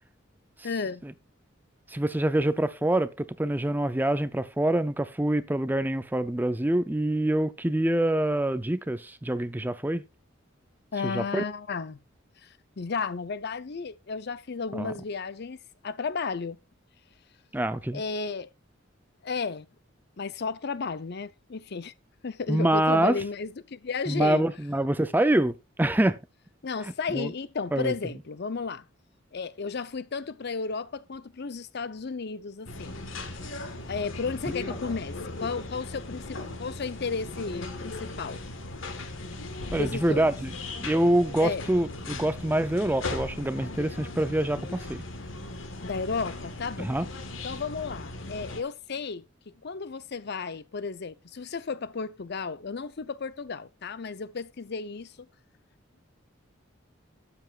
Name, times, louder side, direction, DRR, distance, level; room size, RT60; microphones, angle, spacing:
voice 1, 0.6-1.1 10.9-12.0 12.4-15.6 15.8-16.6 17.9-18.5 19.2-19.7 20.2-21.9 22.2-24.4 26.6-28.9 29.3-33.0 33.8-38.4 39.7-40.3 41.4-41.7 45.8-46.9 47.4-55.3, left 4 dB, 55° left, 0.6 m, -33 dB
voice 2, 1.9-10.0 11.0-11.4 14.7-14.9 17.5-18.0 22.5-23.2 24.1-26.2 27.1-27.3 27.7-27.9 39.7-40.3 40.8-45.0 46.8-47.1, right 1 dB, 10° right, 0.5 m, -25 dB
sound 1, 32.7-48.6, left 2 dB, 80° left, 1.6 m, -38 dB
12.0 x 8.0 x 2.4 m
head